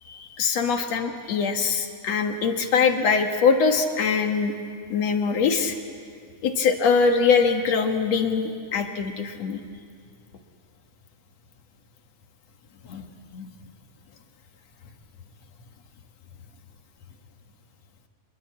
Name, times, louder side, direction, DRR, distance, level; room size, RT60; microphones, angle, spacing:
voice 1, 0.1-4.5 4.9-5.8 6.4-9.6 12.9-13.0 13.3-13.5, left 5 dB, 60° left, 4 dB, 2.5 m, -23 dB
26.0 x 22.0 x 8.4 m, 2.1 s
omnidirectional pair, 3.7 m